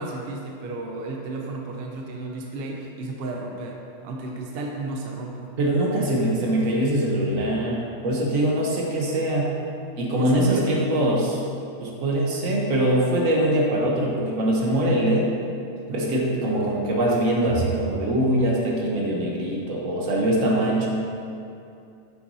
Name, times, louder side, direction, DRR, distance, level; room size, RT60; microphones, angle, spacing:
voice 1, 0.0-5.5 10.2-10.8 15.9-16.2, right 2 dB, 60° right, 1 dB, 0.7 m, -33 dB
voice 2, 5.6-9.6 10.0-11.4 11.8-15.3 15.9-20.9, right 1 dB, 90° right, -2 dB, 1.4 m, -23 dB
7.9 x 5.7 x 2.7 m, 2.6 s
omnidirectional pair, 1.4 m